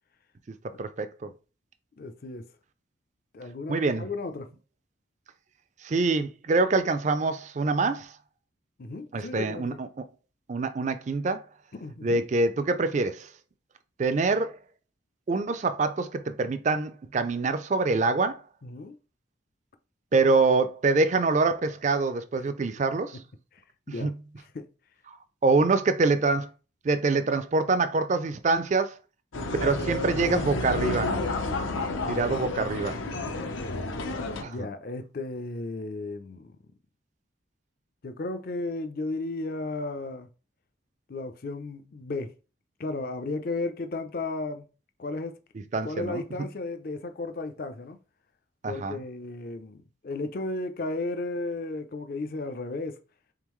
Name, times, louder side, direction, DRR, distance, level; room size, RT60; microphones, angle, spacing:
voice 1, 0.8-1.3 3.7-4.1 5.8-8.1 9.1-9.9 10.5-11.4 12.0-13.3 14.0-14.6 15.3-18.4 20.1-23.2 24.0-24.1 25.4-26.5 26.8-28.9 29.6-31.2 32.1-33.0 34.4-34.5 45.7-46.2 48.6-49.0, right 3 dB, 35° right, 0.4 m, -25 dB
voice 2, 2.0-2.5 3.3-4.5 8.8-9.8 11.7-12.2 18.6-19.0 23.5-23.6 23.9-24.7 33.4-33.7 34.4-36.6 38.0-40.3 41.1-42.4 42.8-44.7 45.0-45.4 45.8-48.0 48.7-53.0, left 2 dB, 50° left, 0.5 m, -34 dB
sound 1, 29.3-34.4, left 2 dB, 80° left, 0.7 m, -30 dB
3.8 x 3.6 x 3.1 m
head